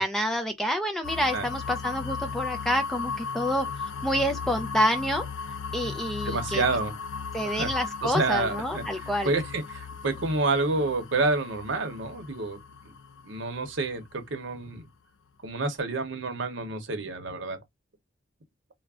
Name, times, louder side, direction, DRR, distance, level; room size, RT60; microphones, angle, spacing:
voice 1, 0.0-5.2 5.7-6.6 7.3-9.3, equal, ahead, 0.3 m, -28 dB
sound 1, 1.0-14.8, left 5 dB, 75° left, 0.4 m, -36 dB
voice 2, 6.2-6.9 7.4-7.7 8.0-12.6 13.2-14.8 15.4-17.6, right 3 dB, 65° right, 0.8 m, -29 dB
2.4 x 2.1 x 3.5 m
head